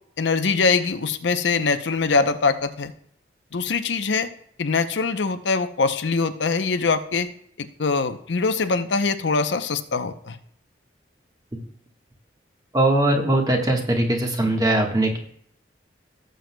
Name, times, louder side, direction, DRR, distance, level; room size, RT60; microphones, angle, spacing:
voice 1, 0.2-2.9 3.5-4.3 4.6-7.3 7.6-10.4, left 4 dB, 80° left, 9 dB, 0.7 m, -23 dB
voice 2, 12.7-15.2, right 1 dB, 20° right, 2 dB, 1.3 m, -20 dB
17.5 x 7.7 x 2.2 m, 0.66 s
head